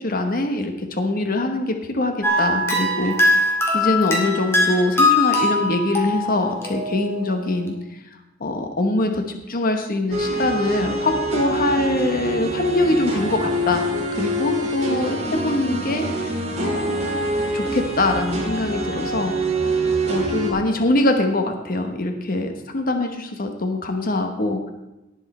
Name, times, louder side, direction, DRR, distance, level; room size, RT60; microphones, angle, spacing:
voice 1, 0.0-7.7 8.4-13.8 14.2-15.2 15.4-19.3 20.1-24.6, left 2 dB, 45° left, 5 dB, 1.0 m, -23 dB
sound 1, 2.2-7.4, left 2 dB, 15° left, 2.0 m, -21 dB
sound 2, 10.1-20.5, right 1 dB, 35° right, 2.5 m, -25 dB
18.5 x 6.4 x 4.2 m, 1.0 s
head